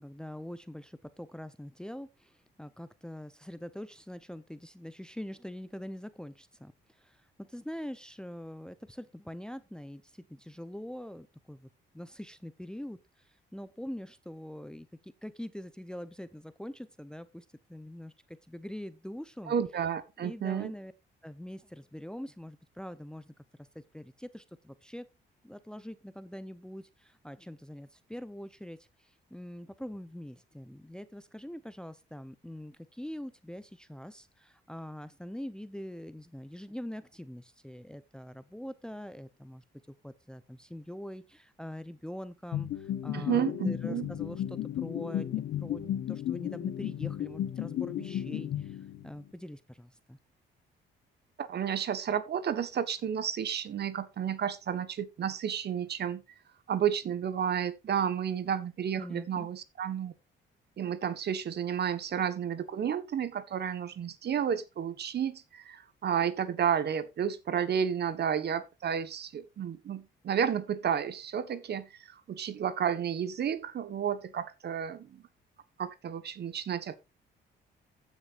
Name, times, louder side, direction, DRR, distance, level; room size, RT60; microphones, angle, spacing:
voice 1, 0.0-2.3 2.6-6.7 7.0-10.0 10.3-11.7 11.9-13.0 13.5-19.5 20.2-20.9 21.2-23.3 23.7-25.1 25.4-28.8 29.3-48.8 49.0-50.2 59.0-59.5, equal, 5° left, 0.7 m, -43 dB
voice 2, 19.5-20.7 43.1-44.1 51.4-56.2 56.7-60.1 60.8-75.2 75.8-77.0, right 8 dB, 55° right, 1.3 m, -31 dB
sound 1, 42.5-49.2, left 11 dB, 75° left, 1.2 m, -34 dB
15.0 x 6.5 x 2.6 m
cardioid pair, 90°, 20 cm